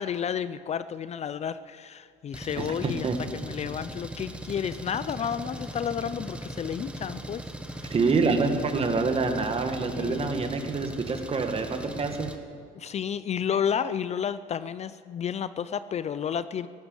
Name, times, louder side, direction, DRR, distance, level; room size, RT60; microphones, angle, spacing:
voice 1, 0.0-3.1 3.4-7.9 9.9-10.3 12.7-16.7, left 8 dB, 40° left, 14 dB, 0.5 m, -31 dB
Engine, 2.3-12.4, right 1 dB, 5° right, 1.2 m, -39 dB
voice 2, 2.6-3.2 7.9-12.3, right 4 dB, 35° right, 5 dB, 1.9 m, -26 dB
17.0 x 11.5 x 7.1 m, 2.1 s
cardioid pair, 110°, 17 cm